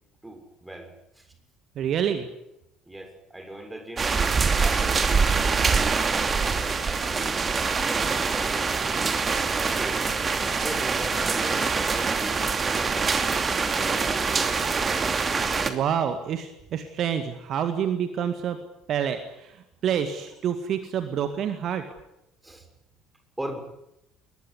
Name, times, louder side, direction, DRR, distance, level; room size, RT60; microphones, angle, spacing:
voice 1, 0.2-1.3 2.8-4.1 4.6-5.9 6.4-9.1 9.5-10.0 10.6-13.1 13.7-14.6 22.4-22.7 23.4-23.6, right 1 dB, 10° right, 6 dB, 6.8 m, -39 dB
voice 2, 1.8-2.3 15.7-18.6 18.9-21.9, right 8 dB, 45° right, 9 dB, 1.9 m, -27 dB
sound 1, 4.0-15.7, right 4 dB, 30° right, 2.8 m, -24 dB
21.5 x 21.5 x 9.8 m, 0.84 s
figure-of-eight pair, 55°, 0 cm